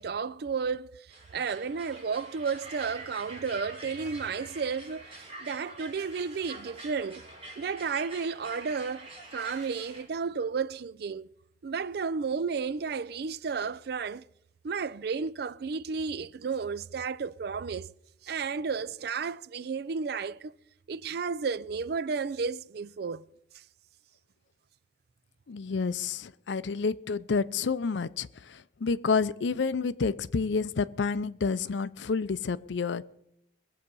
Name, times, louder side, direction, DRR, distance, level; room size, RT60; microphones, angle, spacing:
voice 1, 0.0-7.3 7.6-11.3 11.6-14.2 14.6-17.9 18.2-20.5 20.9-23.2, right 5 dB, 60° right, 0.4 m, -33 dB
sound 1, 1.1-10.1, right 2 dB, 30° right, 3.0 m, -46 dB
voice 2, 25.5-33.1, left 4 dB, 80° left, 0.5 m, -29 dB
21.5 x 7.8 x 5.4 m
head